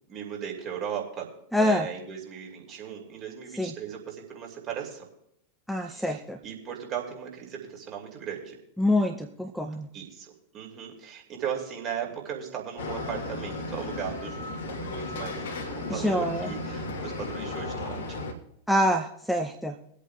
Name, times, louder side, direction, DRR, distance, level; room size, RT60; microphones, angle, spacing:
voice 1, 0.1-1.3 1.6-5.1 5.9-8.6 9.9-18.0, right 8 dB, 35° right, 0 dB, 2.6 m, -37 dB
voice 2, 1.5-1.9 3.6-3.7 5.7-6.4 8.8-9.9 15.9-16.5 18.7-19.7, left 1 dB, ahead, 5 dB, 0.6 m, -26 dB
sound 1, 12.8-18.3, left 2 dB, 60° left, 1.3 m, -35 dB
24.0 x 8.2 x 2.4 m, 0.73 s
figure-of-eight pair, 90°, 0 cm